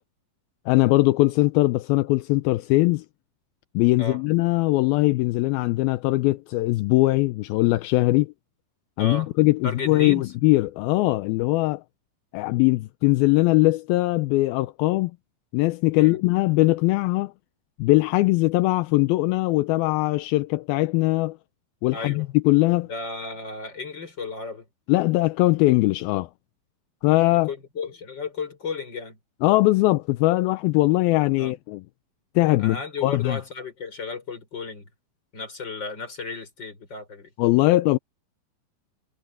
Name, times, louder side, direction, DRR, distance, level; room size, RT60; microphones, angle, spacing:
voice 1, 0.7-3.1 3.7-8.3 9.0-11.8 12.3-15.1 15.5-17.3 17.8-21.4 21.8-22.9 24.9-26.3 27.0-27.5 29.4-31.8 32.4-33.4 37.4-38.0, left 20 dB, 80° left, 2.5 m, -21 dB
voice 2, 9.0-9.3 9.6-10.3 16.0-16.2 21.9-22.3 22.9-24.7 27.5-29.2 31.4-31.5 32.6-34.9 35.3-37.3, left 4 dB, 30° left, 5.9 m, -34 dB
omnidirectional pair, 4.3 m